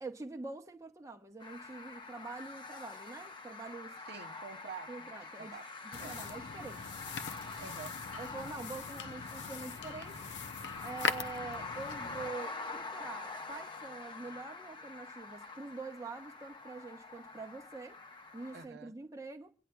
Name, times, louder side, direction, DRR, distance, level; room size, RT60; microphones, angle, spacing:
voice 1, 0.0-4.0 4.9-5.6 5.8-6.9 8.2-10.3 10.8-18.0 18.3-19.5, right 3 dB, 20° right, 0.8 m, -45 dB
sound 1, 1.4-18.7, left 3 dB, 25° left, 0.8 m, -45 dB
voice 2, 4.1-5.1 5.4-5.7 6.0-6.2 7.6-8.0 18.5-19.0, right 6 dB, 65° right, 0.7 m, -47 dB
sound 2, 5.9-12.3, left 5 dB, 80° left, 0.6 m, -41 dB
27.5 x 9.8 x 2.2 m
head